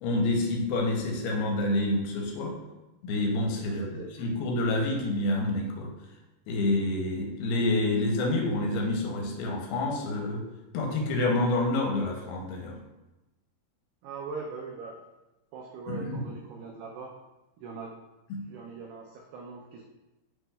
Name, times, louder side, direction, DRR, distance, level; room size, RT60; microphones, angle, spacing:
voice 1, 0.0-2.5 3.0-3.8 4.2-5.9 6.5-10.4 10.7-12.8 15.9-16.2 18.3-18.4, left 2 dB, 85° left, 1 dB, 2.5 m, -28 dB
voice 2, 3.7-4.4 14.0-15.0 15.5-17.2 17.6-18.0 18.5-19.8, right 4 dB, 85° right, 0 dB, 2.1 m, -41 dB
7.7 x 2.9 x 2.2 m, 1.0 s
omnidirectional pair, 4.5 m